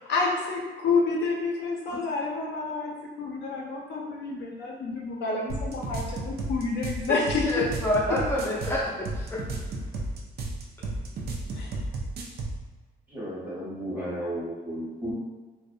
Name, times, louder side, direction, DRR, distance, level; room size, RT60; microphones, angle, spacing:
voice 1, 0.1-7.5 11.5-11.7, left 4 dB, 65° left, -1 dB, 0.5 m, -29 dB
sound 1, 5.5-12.6, right 2 dB, 55° right, 0.4 m, -33 dB
voice 2, 7.5-9.4, left 1 dB, 15° left, -6 dB, 0.6 m, -27 dB
voice 3, 13.1-15.1, equal, 10° right, -9 dB, 1.0 m, -33 dB
2.5 x 2.0 x 2.5 m, 1.3 s
cardioid pair, 120°, 19 cm